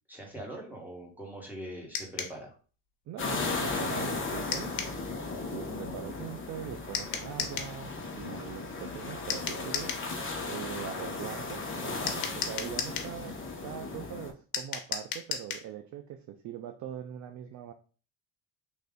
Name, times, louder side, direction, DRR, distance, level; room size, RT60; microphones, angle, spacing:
voice 1, 0.1-2.5 5.2-5.5 12.9-13.0, right 1 dB, 5° right, -1 dB, 1.5 m, -43 dB
sound 1, 1.9-2.4 4.5-5.0 6.9-7.7 9.3-10.1 12.1-13.1 14.5-15.7, left 7 dB, 60° left, 0.9 m, -34 dB
voice 2, 3.1-9.9 10.5-13.3 13.6-17.7, right 10 dB, 40° right, 7 dB, 0.4 m, -42 dB
sound 2, 3.2-14.3, left 3 dB, 25° left, 0.9 m, -36 dB
3.2 x 2.6 x 3.7 m, 0.39 s
supercardioid pair, 85°, 47 cm